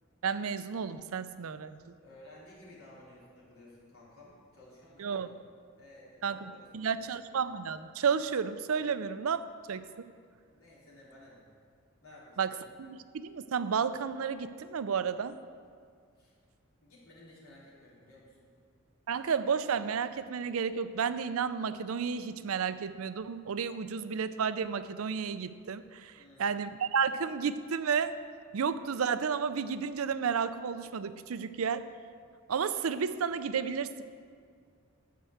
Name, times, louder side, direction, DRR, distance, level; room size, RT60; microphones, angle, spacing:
voice 1, 0.2-1.8 5.0-5.3 6.2-10.1 12.4-15.4 19.1-26.1 26.4-28.1 28.5-31.9 32.5-34.0, right 6 dB, 75° right, 13 dB, 0.5 m, -32 dB
voice 2, 2.0-5.4 5.8-7.1 10.5-11.5 12.0-12.6 16.1-16.3 16.8-18.5 26.1-26.6, left 1 dB, 75° left, -6 dB, 3.2 m, -55 dB
12.0 x 4.6 x 7.9 m, 2.1 s
head